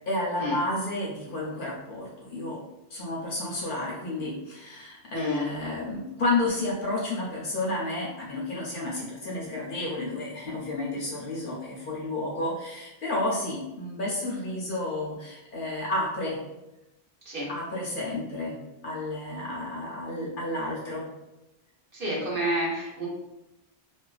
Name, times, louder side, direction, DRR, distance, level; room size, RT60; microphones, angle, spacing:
voice 1, 0.0-2.6 2.9-16.4 17.5-21.1, left 2 dB, 60° left, -4 dB, 0.7 m, -31 dB
voice 2, 5.1-5.4 17.2-17.5 21.9-23.1, right 1 dB, 55° right, -6 dB, 0.9 m, -29 dB
2.5 x 2.2 x 2.3 m, 0.96 s
omnidirectional pair, 1.1 m